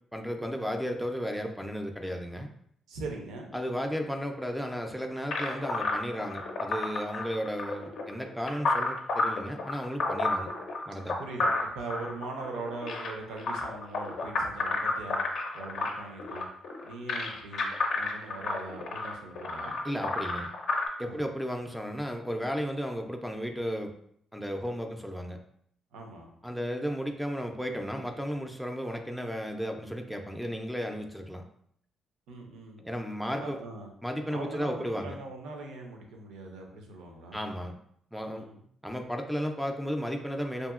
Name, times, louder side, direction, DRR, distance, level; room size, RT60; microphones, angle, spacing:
voice 1, 0.1-2.5 3.5-10.5 10.9-11.2 19.8-20.5 21.0-23.9 24.3-25.4 26.4-31.4 32.8-33.6 34.0-35.2 37.3-37.8 38.1-38.5 38.8-40.7, equal, ahead, 3 dB, 0.3 m, -34 dB
voice 2, 2.9-3.5 11.2-15.2 15.5-16.5 16.8-17.7 17.9-19.7 21.0-21.2 25.9-26.3 32.3-32.8 33.4-33.9 34.3-37.5 38.3-38.6, right 3 dB, 90° right, 2 dB, 0.5 m, -41 dB
sound 1, 5.3-20.9, left 3 dB, 65° left, 0.5 m, -31 dB
2.7 x 2.6 x 2.4 m, 0.67 s
cardioid pair, 90°, 0 cm